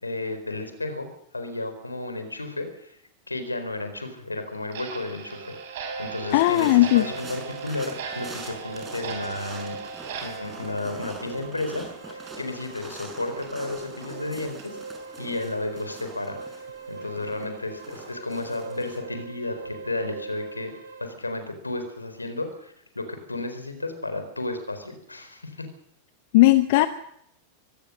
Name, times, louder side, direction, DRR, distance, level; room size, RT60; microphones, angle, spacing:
voice 1, 0.0-1.1 1.3-3.0 3.3-9.8 10.2-14.8 15.2-20.7 21.0-25.7, left 2 dB, 80° left, 8 dB, 4.2 m, -33 dB
Clock, 4.7-11.9 12.2-12.3 12.8-12.9 13.4-13.5 14.0-14.1 14.6-14.7 15.2-15.3, right 7 dB, 55° right, 5.5 m, -39 dB
sound 1, 4.7-21.1, right 3 dB, 70° right, 4.2 m, -41 dB
voice 2, 6.3-7.0 26.3-26.9, left 17 dB, 50° left, 12 dB, 0.9 m, -17 dB
sound 2, 6.3-19.0, right 2 dB, 15° right, 6.4 m, -44 dB
24.0 x 17.5 x 6.5 m, 0.73 s
figure-of-eight pair, 90°, 0 cm